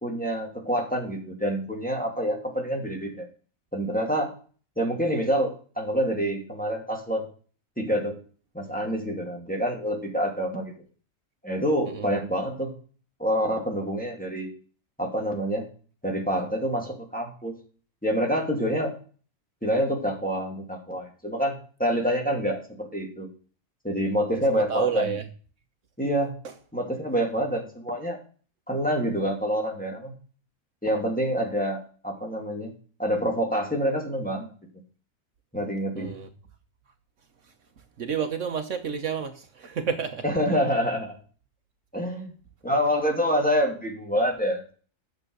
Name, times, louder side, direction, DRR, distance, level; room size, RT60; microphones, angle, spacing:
voice 1, 0.0-3.3 3.7-4.3 4.8-7.3 7.8-8.2 8.5-10.7 11.4-12.7 13.2-14.5 15.0-15.7 16.0-17.5 18.0-18.9 19.6-21.5 21.8-23.3 23.8-25.1 26.0-26.4 26.7-28.2 28.7-30.1 30.8-32.7 33.0-34.5 35.5-36.1 40.2-41.1 41.9-42.3 42.6-44.7, equal, 5° left, 2.6 m, -27 dB
voice 2, 24.5-25.2 36.0-36.3 38.0-40.2, right 7 dB, 65° right, 1.3 m, -30 dB
9.6 x 7.3 x 6.6 m
omnidirectional pair, 1.4 m